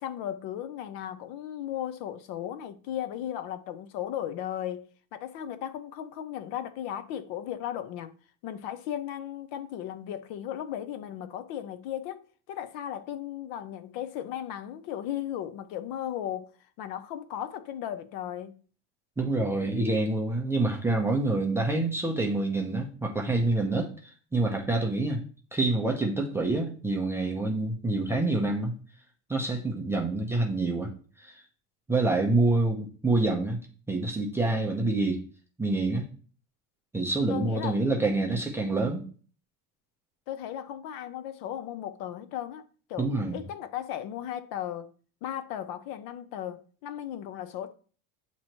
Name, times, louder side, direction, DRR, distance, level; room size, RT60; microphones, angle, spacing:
voice 1, 0.0-8.1 8.4-16.5 16.8-18.6 37.3-38.5 40.3-44.9 45.2-47.7, left 11 dB, 55° left, 0.6 m, -36 dB
voice 2, 19.2-25.2 25.5-28.7 29.3-30.9 31.2-31.4 31.9-33.6 33.9-35.2 35.6-36.1 36.9-39.1 43.0-43.4, right 2 dB, 5° right, 0.4 m, -27 dB
7.6 x 2.9 x 4.4 m
cardioid pair, 160°, 41 cm